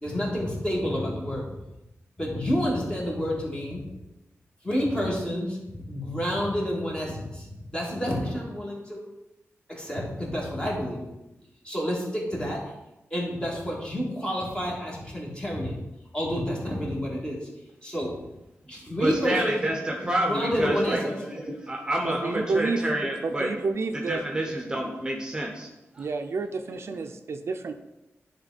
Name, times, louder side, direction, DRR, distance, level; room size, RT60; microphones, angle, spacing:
voice 1, 0.0-1.4 2.2-3.8 4.6-5.6 5.9-9.0 9.7-11.1 11.6-12.7 13.1-15.8 16.1-17.4 17.8-18.1 18.7-19.7 20.3-21.0, equal, 20° left, -3 dB, 2.1 m, -29 dB
voice 2, 19.0-23.5 23.9-25.7 25.9-26.0, right 1 dB, 15° right, 1 dB, 0.9 m, -28 dB
voice 3, 22.0-22.9 23.2-24.2 26.0-27.7, right 4 dB, 60° right, 6 dB, 0.5 m, -29 dB
10.5 x 3.7 x 4.1 m, 0.97 s
wide cardioid pair, 115°, 5 cm